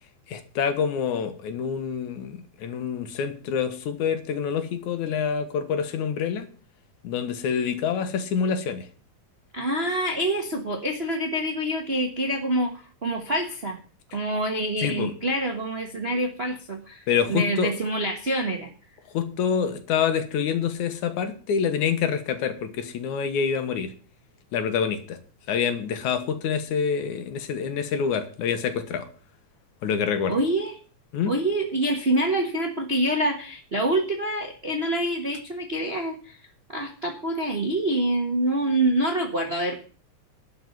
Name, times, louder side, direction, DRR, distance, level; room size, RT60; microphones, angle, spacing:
voice 1, 0.3-6.5 7.0-8.9 14.8-15.1 17.1-17.7 19.1-23.9 24.5-25.2 25.5-29.1 29.8-30.4 31.1-31.3, left 7 dB, 80° left, 2.7 m, -26 dB
voice 2, 9.5-13.8 14.1-17.0 17.3-18.7 30.3-30.7 31.3-36.3 36.7-39.8, right 1 dB, 40° right, 0.8 m, -26 dB
12.0 x 5.8 x 9.2 m
omnidirectional pair, 3.5 m